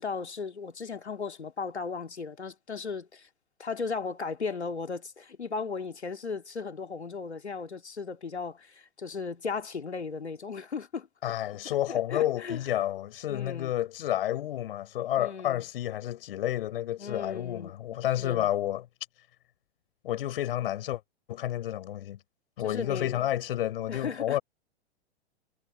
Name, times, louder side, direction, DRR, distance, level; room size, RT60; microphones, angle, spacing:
voice 1, 0.0-3.3 3.6-11.1 11.9-12.6 13.3-13.7 15.2-15.6 17.0-17.7 18.2-18.5 22.6-23.3 23.9-24.4, left 5 dB, 80° left, 2.8 m, -36 dB
voice 2, 11.2-18.8 20.0-21.0 21.3-22.2 22.6-24.4, left 12 dB, 55° left, 6.7 m, -30 dB
figure-of-eight pair, 105°, 33 cm